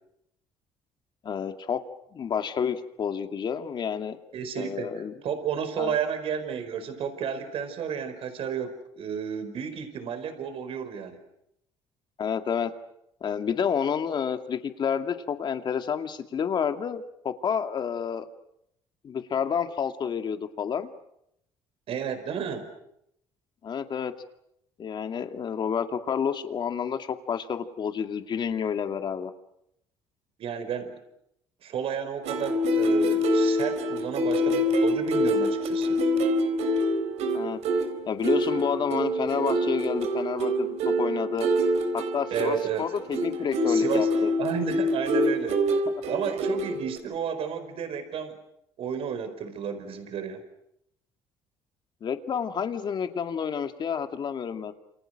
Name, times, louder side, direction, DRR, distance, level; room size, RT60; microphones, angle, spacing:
voice 1, 1.2-1.8 2.1-4.2 4.6-5.1 5.8-5.9 12.2-12.7 13.2-18.3 19.0-20.9 23.6-24.1 24.8-29.3 37.3-37.6 38.0-41.5 41.9-44.3 52.0-54.7, left 7 dB, 45° left, 7 dB, 2.3 m, -29 dB
voice 2, 4.3-11.2 21.9-22.7 30.4-31.0 31.6-36.0 42.3-42.9 43.7-44.1 44.4-48.4 48.8-50.4, right 7 dB, 60° right, 9 dB, 4.8 m, -32 dB
sound 1, 32.2-47.0, equal, 75° right, 3.9 m, -26 dB
28.5 x 28.0 x 6.5 m, 0.77 s
cardioid pair, 115°, 11 cm